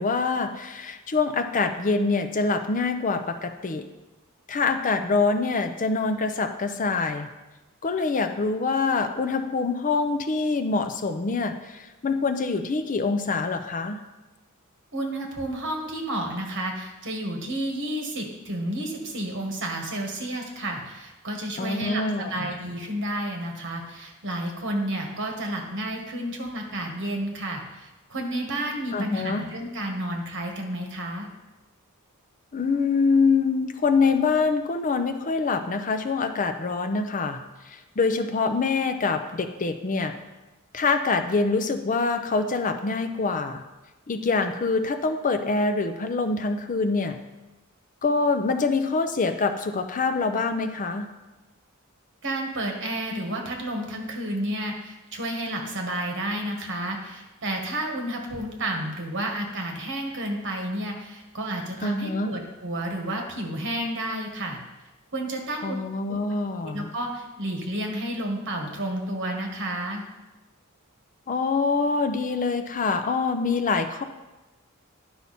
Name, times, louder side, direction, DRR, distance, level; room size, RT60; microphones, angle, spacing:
voice 1, 0.0-3.8 4.5-7.3 7.8-14.0 21.6-22.3 28.9-29.4 32.5-40.2 40.7-43.6 44.1-47.2 48.0-51.1 61.8-62.4 65.6-66.9 71.3-74.0, left 4 dB, 40° left, 8 dB, 0.5 m, -25 dB
voice 2, 14.9-31.3 52.2-64.6 65.1-65.7 66.1-66.2 66.6-70.0, right 1 dB, 60° right, 2 dB, 1.6 m, -31 dB
10.5 x 5.7 x 4.2 m, 1.1 s
head